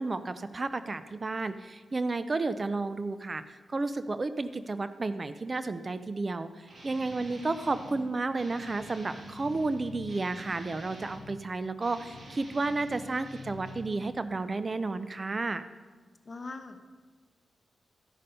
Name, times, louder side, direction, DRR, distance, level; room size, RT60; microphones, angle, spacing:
voice 1, 0.0-3.4 3.7-15.6, right 3 dB, 35° right, 12 dB, 0.5 m, -32 dB
Guitar, 6.7-8.0 8.4-11.3 11.8-13.9, equal, 60° right, 2.6 m, -47 dB
voice 2, 16.3-16.8, left 3 dB, 40° left, 6 dB, 1.0 m, -41 dB
12.5 x 5.5 x 5.3 m, 1.3 s
cardioid pair, 75°, 0 cm